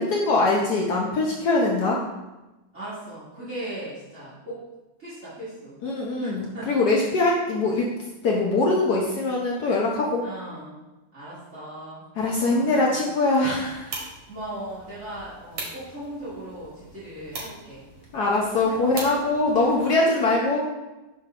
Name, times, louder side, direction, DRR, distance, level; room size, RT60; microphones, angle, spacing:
voice 1, 0.0-2.0 5.8-7.9 8.2-10.2 12.2-14.0 18.1-20.6, left 2 dB, 60° left, -2 dB, 1.2 m, -22 dB
voice 2, 2.7-4.6 5.0-5.8 6.2-6.7 10.2-10.8 11.1-12.0 12.5-13.0 14.3-17.9 18.6-18.8, right 1 dB, 35° right, -12 dB, 2.3 m, -38 dB
sound 1, 13.5-19.9, right 2 dB, 70° right, 2.2 m, -41 dB
6.0 x 5.4 x 3.7 m, 1.0 s
omnidirectional pair, 2.1 m